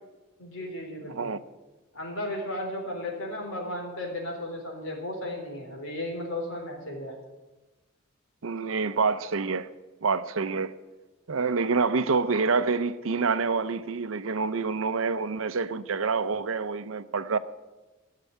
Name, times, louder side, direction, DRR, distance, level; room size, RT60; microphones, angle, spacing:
voice 1, 0.4-1.3 1.9-7.1, left 1 dB, 75° left, 3.6 m, -35 dB
voice 2, 1.1-1.4 8.4-9.7 10.0-10.7 11.3-17.4, right 4 dB, 80° right, 0.7 m, -27 dB
13.5 x 6.7 x 9.2 m
head